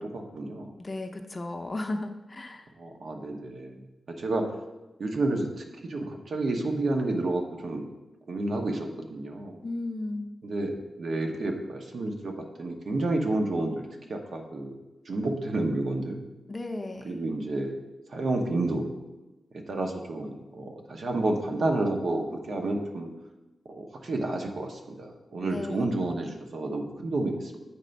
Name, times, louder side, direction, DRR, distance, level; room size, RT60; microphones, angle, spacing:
voice 1, 0.0-0.7 2.8-3.8 4.1-4.5 5.0-7.9 8.3-9.6 10.4-14.7 15.0-16.2 17.0-17.7 18.1-18.9 19.5-23.1 23.7-27.5, right 2 dB, 65° right, 3 dB, 0.9 m, -30 dB
voice 2, 0.8-2.7 9.6-10.3 16.5-17.2 25.4-25.9, left 2 dB, 30° left, 5 dB, 0.6 m, -35 dB
8.3 x 3.3 x 5.3 m, 1.1 s
wide cardioid pair, 90°, 0 cm